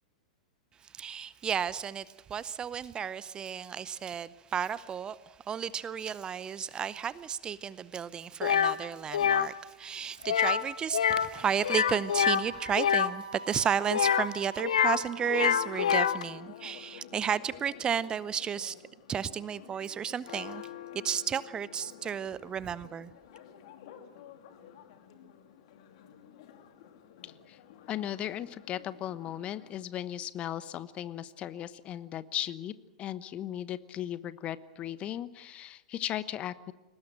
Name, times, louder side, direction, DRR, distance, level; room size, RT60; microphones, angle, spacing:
voice 1, 0.8-18.8 19.1-20.7 20.9-23.1, right 8 dB, 20° right, 19 dB, 0.7 m, -33 dB
sound 1, 8.4-8.7 9.1-9.5 10.2-10.6 10.9-11.3 11.6-13.1 13.9-15.0 15.3-16.2, left 8 dB, 70° left, 1.0 m, -26 dB
Wind instrument woodwind instrument, 11.7-15.8, right 4 dB, 85° right, 2.5 m, -46 dB
Church bell, 14.8-29.8, left 10 dB, 55° left, 2.6 m, -50 dB
voice 2, 27.2-27.6 27.9-32.7 33.0-36.7, left 11 dB, 30° left, 16 dB, 1.1 m, -37 dB
22.5 x 19.5 x 7.7 m, 1.0 s
figure-of-eight pair, 100°, 4 cm